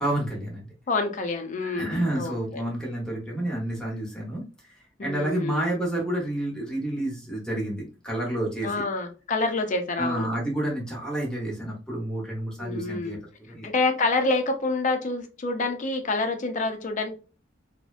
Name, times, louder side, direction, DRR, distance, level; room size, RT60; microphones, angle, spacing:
voice 1, 0.0-0.7 1.6-4.4 5.0-8.8 10.0-13.7, right 1 dB, 5° left, -3 dB, 0.8 m, -29 dB
voice 2, 0.9-2.6 5.0-5.8 8.6-10.3 12.6-13.2 13.6-17.1, left 3 dB, 40° left, 6 dB, 0.5 m, -27 dB
2.6 x 2.1 x 2.4 m, 0.34 s
head